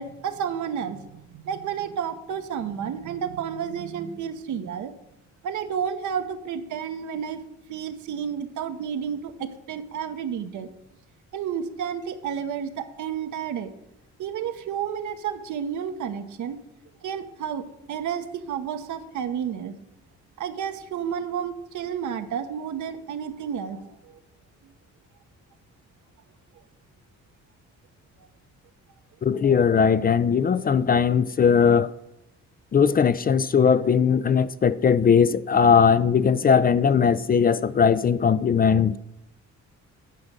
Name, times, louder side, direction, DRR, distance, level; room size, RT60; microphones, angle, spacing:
voice 1, 0.0-4.9 5.4-7.4 7.7-10.7 11.3-13.7 14.2-16.6 17.0-19.7 20.4-24.2 24.6-24.7, right 8 dB, 75° right, 1.1 m, -31 dB
voice 2, 29.2-31.9 32.7-39.0, left 6 dB, 30° left, 0.4 m, -19 dB
9.7 x 5.2 x 7.4 m
cardioid pair, 90°, 30 cm